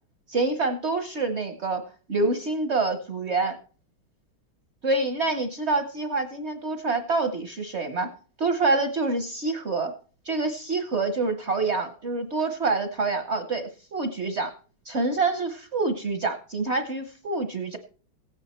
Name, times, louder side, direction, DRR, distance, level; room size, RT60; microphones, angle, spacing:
voice 1, 0.3-1.8 2.1-3.6 4.8-8.1 8.4-9.9 10.3-14.5 14.9-17.8, right 3 dB, 55° right, 7 dB, 0.7 m, -26 dB
15.5 x 9.0 x 4.3 m, 0.41 s
omnidirectional pair, 2.3 m